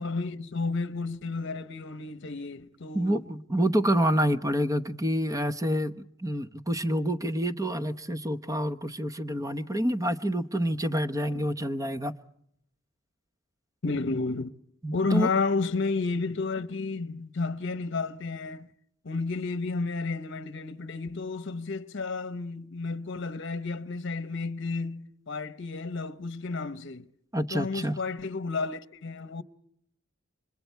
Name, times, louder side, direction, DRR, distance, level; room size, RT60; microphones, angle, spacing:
voice 1, 0.0-3.2 13.8-14.5 14.9-18.7 19.0-27.1 27.5-29.4, left 3 dB, 60° left, 0.9 m, -31 dB
voice 2, 2.9-5.9 6.2-12.1 14.8-15.3 27.3-28.0, equal, 15° right, 0.9 m, -27 dB
30.0 x 26.0 x 4.6 m
head